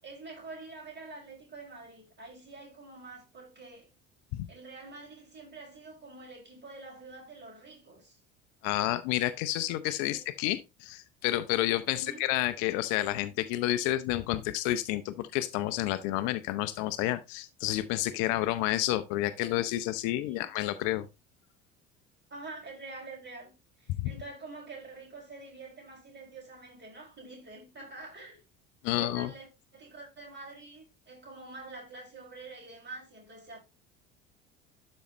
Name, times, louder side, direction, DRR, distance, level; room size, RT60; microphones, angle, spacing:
voice 1, 0.0-3.9 4.5-8.2 10.0-10.2 11.9-12.2 20.3-20.5 22.3-28.4 28.9-29.5 29.7-33.6, right 3 dB, 30° right, 5.8 m, -46 dB
voice 2, 8.6-21.1 23.9-24.1 28.8-29.3, left 15 dB, 50° left, 0.7 m, -30 dB
12.0 x 5.3 x 3.1 m
figure-of-eight pair, 65°, 38 cm